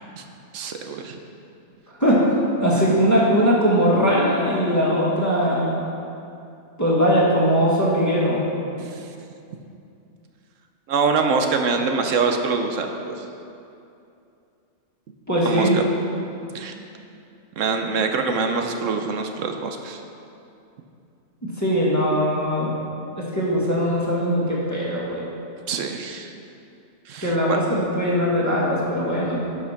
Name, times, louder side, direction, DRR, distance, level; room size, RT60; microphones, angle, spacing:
voice 1, 0.5-1.2 8.8-9.0 10.9-13.1 15.4-15.8 16.5-16.7 17.6-20.0 25.7-26.3 27.1-27.4, right 4 dB, 90° right, 5 dB, 1.2 m, -24 dB
voice 2, 2.6-5.8 6.8-8.4 15.3-15.8 21.4-22.7 23.2-25.2 27.2-29.4, equal, 15° left, -6 dB, 1.9 m, -20 dB
12.0 x 5.5 x 5.8 m, 2.6 s
omnidirectional pair, 1.3 m